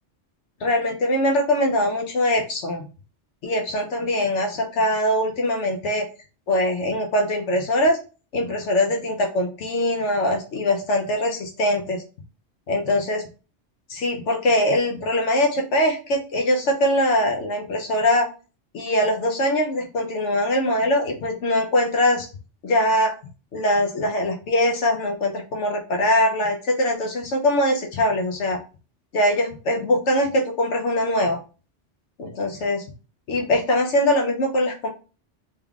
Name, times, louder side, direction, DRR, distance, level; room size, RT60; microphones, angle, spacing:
voice 1, 0.6-2.9 3.4-6.1 6.5-8.0 8.3-12.0 12.7-13.2 13.9-18.3 18.7-22.3 22.6-23.1 23.5-28.6 29.1-31.4 32.2-32.8 33.3-34.9, left 1 dB, 75° left, 2 dB, 1.0 m, -22 dB
3.5 x 3.2 x 2.3 m, 0.34 s
omnidirectional pair, 1.2 m